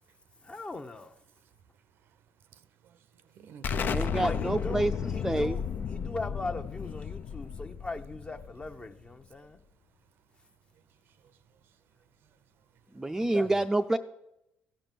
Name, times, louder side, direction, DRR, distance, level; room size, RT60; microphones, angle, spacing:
voice 1, 0.4-1.2 4.2-9.6 13.2-13.5, left 2 dB, 25° left, 0.9 m, -40 dB
voice 2, 2.5-4.2 11.2-11.3 13.0-13.5, right 7 dB, 70° right, 0.6 m, -48 dB
Explosion, 3.6-9.1, left 7 dB, 55° left, 0.5 m, -33 dB
voice 3, 3.9-5.6 12.9-14.0, right 2 dB, 10° right, 0.5 m, -28 dB
15.5 x 5.2 x 7.5 m
supercardioid pair, 65°, 4 cm